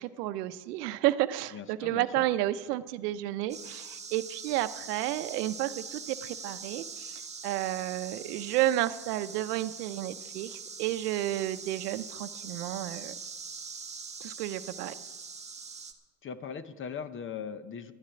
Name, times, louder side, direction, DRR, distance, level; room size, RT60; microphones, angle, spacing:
voice 1, 0.0-13.1 14.2-14.9, right 14 dB, 85° right, 13 dB, 0.8 m, -31 dB
voice 2, 1.5-2.2 16.2-17.9, left 7 dB, 25° left, 13 dB, 0.7 m, -39 dB
sound 1, 3.5-15.9, right 5 dB, 15° right, 1.1 m, -43 dB
11.0 x 7.4 x 9.8 m, 1.3 s
supercardioid pair, 110°, 47 cm